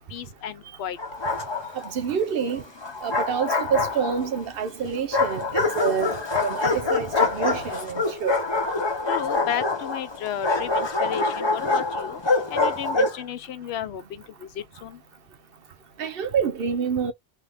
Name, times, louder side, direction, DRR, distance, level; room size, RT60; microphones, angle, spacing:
voice 1, 0.1-1.0 9.1-12.2 12.5-14.5 14.8-15.0, left 10 dB, 75° left, 0.8 m, -33 dB
Bark, 1.0-1.9 2.8-4.4 5.1-13.2, left 3 dB, 30° left, 0.7 m, -25 dB
voice 2, 1.7-2.6 3.0-8.4 16.0-17.1, right 7 dB, 65° right, 0.8 m, -27 dB
2.7 x 2.6 x 3.3 m
omnidirectional pair, 1.1 m